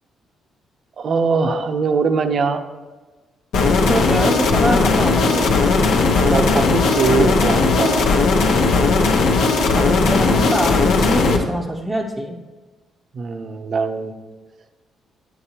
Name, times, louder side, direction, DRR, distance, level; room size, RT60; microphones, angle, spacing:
voice 1, 1.0-2.6 6.2-8.1 13.1-14.1, right 4 dB, 55° right, 7 dB, 0.7 m, -21 dB
sound 1, 3.5-11.4, left 3 dB, 85° left, 0.9 m, -17 dB
voice 2, 3.9-5.6 9.7-12.4, equal, 10° right, -1 dB, 0.6 m, -24 dB
9.0 x 7.1 x 2.9 m, 1.3 s
cardioid pair, 90°, 0 cm